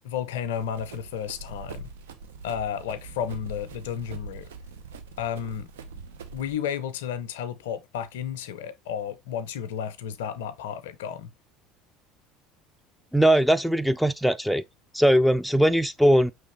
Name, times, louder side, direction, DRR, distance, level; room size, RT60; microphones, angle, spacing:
voice 1, 0.0-1.9 2.4-4.5 5.2-5.7 6.3-11.3, left 8 dB, 75° left, 0.5 m, -32 dB
Run, 0.5-6.5, right 4 dB, 80° right, 0.6 m, -43 dB
voice 2, 13.1-14.6 14.9-16.3, equal, ahead, 0.4 m, -20 dB
5.0 x 3.3 x 3.1 m
hypercardioid pair, 70°, 0 cm